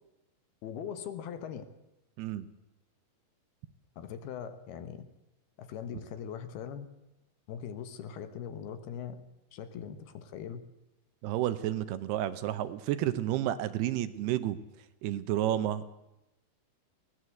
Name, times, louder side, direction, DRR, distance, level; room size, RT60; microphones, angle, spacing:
voice 1, 0.6-1.6 4.0-5.1 5.6-6.9 7.5-9.2 9.5-10.6, left 8 dB, 75° left, 10 dB, 3.2 m, -41 dB
voice 2, 2.2-2.5 11.2-14.6 15.0-15.9, right 12 dB, 80° right, 13 dB, 2.9 m, -31 dB
21.5 x 18.0 x 7.9 m, 0.94 s
omnidirectional pair, 4.8 m